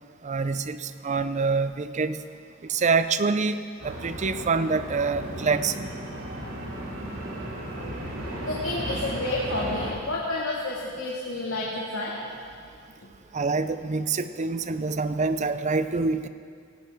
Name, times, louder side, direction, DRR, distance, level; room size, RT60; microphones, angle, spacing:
voice 1, 0.2-2.2 2.7-3.6 3.8-5.9 13.3-16.3, right 4 dB, 35° right, 12 dB, 0.5 m, -26 dB
sound 1, 3.8-9.9, right 1 dB, 75° right, 2.7 m, -35 dB
voice 2, 8.5-12.1, left 2 dB, 75° left, -5 dB, 2.1 m, -30 dB
17.0 x 16.0 x 3.6 m, 2.1 s
head